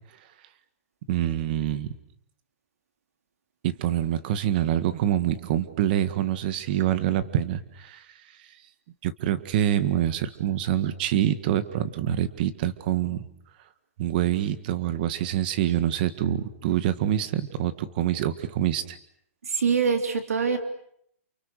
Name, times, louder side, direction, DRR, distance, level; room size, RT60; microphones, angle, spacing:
voice 1, 1.1-1.9 3.6-8.0 9.0-13.3 14.0-19.0, right 11 dB, 40° right, 12 dB, 1.8 m, -26 dB
voice 2, 19.4-20.6, right 6 dB, 85° right, 6 dB, 3.7 m, -24 dB
29.5 x 29.0 x 6.7 m, 0.70 s
hypercardioid pair, 165°, 8 cm